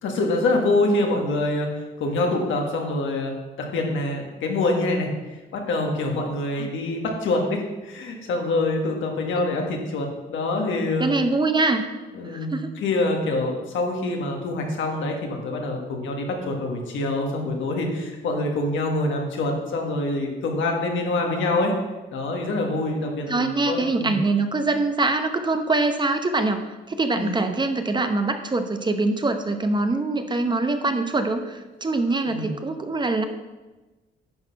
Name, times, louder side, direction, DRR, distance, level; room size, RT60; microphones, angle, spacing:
voice 1, 0.0-3.3 3.6-5.1 5.5-11.1 12.1-21.7 22.1-24.2 27.2-27.5 32.2-32.5, left 2 dB, 75° left, 1 dB, 1.8 m, -25 dB
voice 2, 11.0-11.9 12.3-12.7 23.3-26.6 26.9-33.2, right 3 dB, 25° right, 7 dB, 0.8 m, -24 dB
10.5 x 4.2 x 5.8 m, 1.2 s
cardioid pair, 90°, 20 cm